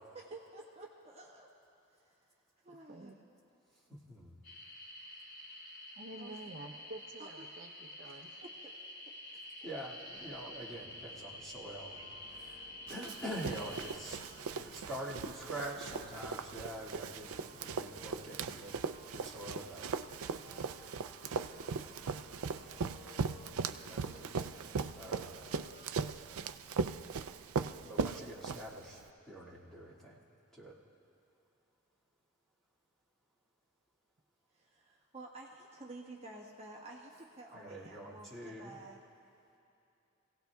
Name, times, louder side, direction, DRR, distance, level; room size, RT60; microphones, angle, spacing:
voice 1, 0.1-1.5 2.0-2.1 2.6-3.2 6.2-6.4 7.2-7.5 8.1-8.7 9.1-9.2 34.5-39.0, right 2 dB, 30° right, -2 dB, 1.3 m, -51 dB
sound 1, 4.4-13.9, left 1 dB, 55° left, 3.2 m, -49 dB
voice 2, 6.0-8.4 12.0-12.1 37.8-37.9 38.8-38.9, right 1 dB, 55° right, 2 dB, 0.7 m, -49 dB
voice 3, 9.6-14.2 14.5-18.8 19.1-19.9 23.8-24.5 24.9-25.4 27.8-29.0 29.3-30.2 30.5-30.7 37.5-38.8, right 1 dB, ahead, -6 dB, 1.9 m, -45 dB
sound 2, 10.0-25.9, left 3 dB, 25° left, 3.0 m, -58 dB
Run, 12.9-29.0, right 5 dB, 90° right, 0.4 m, -39 dB
26.5 x 17.0 x 2.3 m, 2.8 s
head